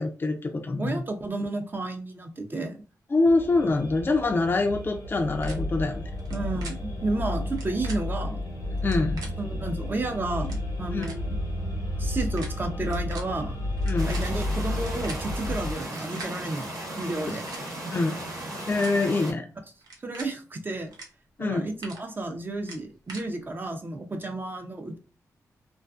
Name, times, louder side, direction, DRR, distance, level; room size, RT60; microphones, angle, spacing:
voice 1, 0.0-1.0 3.1-6.0 8.8-9.2 10.9-11.1 13.9-14.1 17.9-18.2 18.7-19.5 21.4-21.6, left 3 dB, 35° left, 4 dB, 0.4 m, -25 dB
voice 2, 0.8-2.8 6.3-8.4 9.4-11.3 12.0-13.6 14.0-16.7 17.0-17.4 20.0-20.9 21.4-25.0, right 2 dB, 35° right, 5 dB, 0.5 m, -32 dB
sound 1, 3.2-15.8, left 1 dB, 90° left, 0.8 m, -32 dB
sound 2, 5.4-5.5 6.2-6.4 6.6-6.7 7.5-8.0 8.8-9.3 10.1-10.2 10.4-10.6 11.0-11.2 12.1-12.5 12.8-13.2 13.8-15.2 15.9-16.3 17.2-17.6 18.4-18.9 19.8-20.3 20.9-21.1 21.4-22.0 22.6-23.2, right 3 dB, 85° right, 0.6 m, -42 dB
sound 3, 14.0-19.3, right 1 dB, 70° right, 1.1 m, -36 dB
2.4 x 2.4 x 2.3 m, 0.35 s
cardioid pair, 65°, 6 cm